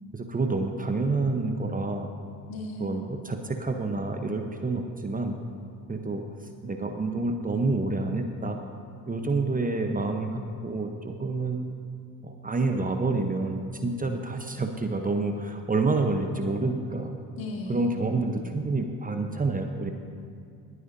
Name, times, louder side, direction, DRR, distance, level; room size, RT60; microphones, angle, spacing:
voice 1, 0.1-2.1 2.8-5.4 5.9-6.2 6.6-8.6 9.1-11.6 12.2-17.1 17.7-19.9, right 3 dB, 20° right, 5 dB, 1.0 m, -28 dB
voice 2, 2.5-3.1 9.1-9.3 17.4-18.0, left 1 dB, 60° left, -1 dB, 2.5 m, -36 dB
21.5 x 9.4 x 2.8 m, 2.3 s
hypercardioid pair, 55°, 40 cm